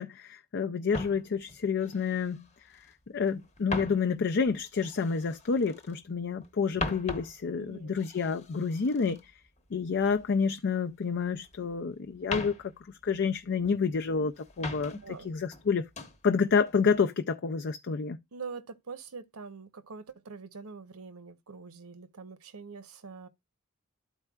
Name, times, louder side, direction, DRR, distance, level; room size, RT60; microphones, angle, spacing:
voice 1, 0.0-2.5 2.7-2.9 3.1-9.3 9.7-12.6 13.0-15.9 16.2-18.2, left 5 dB, 55° left, 0.5 m, -29 dB
sound 1, 0.9-2.9 3.2-6.0 6.4-10.6 10.9-11.8 12.1-13.9 14.3-15.2 15.5-16.2 16.7-17.0, left 2 dB, 30° left, 1.0 m, -41 dB
voice 2, 7.5-8.0 14.9-15.3 18.3-23.3, right 4 dB, 85° right, 0.9 m, -44 dB
13.0 x 4.4 x 2.3 m
head